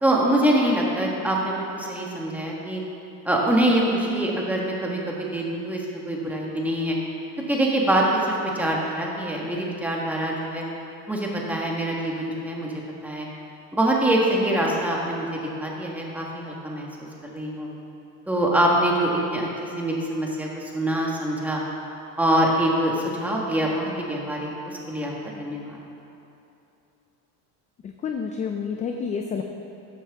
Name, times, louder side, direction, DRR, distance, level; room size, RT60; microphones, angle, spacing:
voice 1, 0.0-2.8 3.2-7.0 7.5-10.6 11.1-12.7 13.0-13.3 13.7-16.9 17.2-17.7 18.3-19.5 19.8-21.6 22.2-25.8, right 1 dB, 5° right, -3 dB, 1.6 m, -24 dB
voice 2, 28.0-29.4, left 6 dB, 20° left, 4 dB, 0.4 m, -28 dB
14.0 x 10.0 x 3.6 m, 2.8 s
cardioid pair, 145°, 40 cm